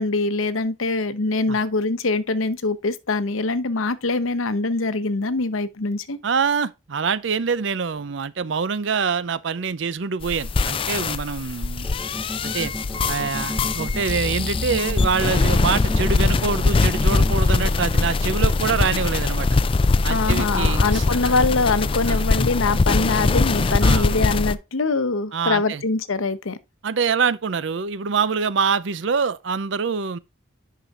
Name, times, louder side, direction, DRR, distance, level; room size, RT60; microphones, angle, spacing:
voice 1, 0.0-6.2 20.1-26.6, left 3 dB, 85° left, 0.9 m, -23 dB
voice 2, 6.2-11.9 12.4-12.7 13.1-19.6 20.0-21.3 22.1-22.2 23.8-24.1 25.3-25.8 26.8-30.2, right 5 dB, 65° right, 0.5 m, -25 dB
sound 1, 10.2-24.5, left 3 dB, 25° left, 0.3 m, -21 dB
sound 2, 11.8-17.3, equal, 5° right, 1.0 m, -33 dB
10.0 x 5.8 x 2.5 m
head